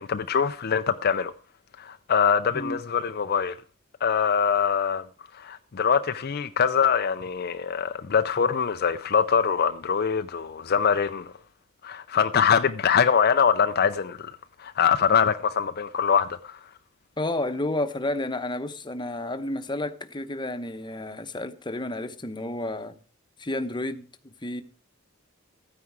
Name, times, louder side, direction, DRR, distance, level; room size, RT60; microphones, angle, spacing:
voice 1, 0.0-1.3 1.8-3.6 4.0-5.0 5.3-11.3 11.8-14.3 14.6-16.6, left 7 dB, 50° left, 0.5 m, -23 dB
voice 2, 17.2-23.0 23.4-24.6, left 1 dB, 25° left, 1.0 m, -31 dB
14.0 x 9.5 x 4.8 m
head